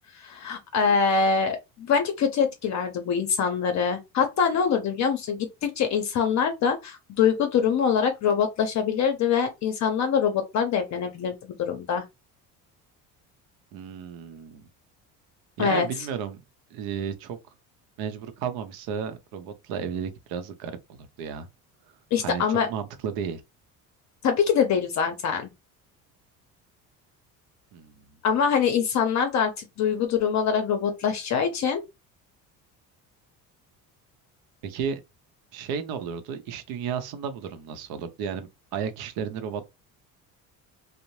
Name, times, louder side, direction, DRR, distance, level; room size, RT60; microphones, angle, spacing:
voice 1, 0.1-12.0 15.6-15.9 22.1-22.7 24.2-25.5 28.2-31.8, left 6 dB, 50° left, 0.6 m, -24 dB
voice 2, 13.7-14.7 15.6-16.4 16.7-17.4 18.0-21.5 22.2-23.4 27.7-28.1 34.6-35.0 35.5-39.6, right 7 dB, 75° right, 0.7 m, -33 dB
2.6 x 2.0 x 3.0 m
cardioid pair, 110°, 36 cm